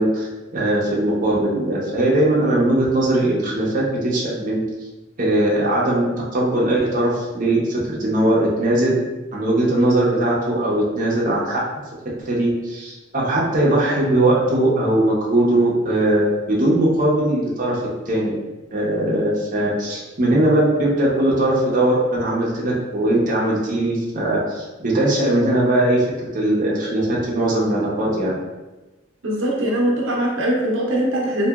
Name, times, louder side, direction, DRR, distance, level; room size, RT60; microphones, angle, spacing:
voice 1, 0.0-4.6 5.2-9.0 9.3-11.6 12.3-17.8 18.1-18.4 18.7-28.3, right 1 dB, 45° right, -5 dB, 0.6 m, -20 dB
voice 2, 29.2-31.5, right 1 dB, 90° right, -3 dB, 0.6 m, -21 dB
2.8 x 2.6 x 2.3 m, 1.1 s
head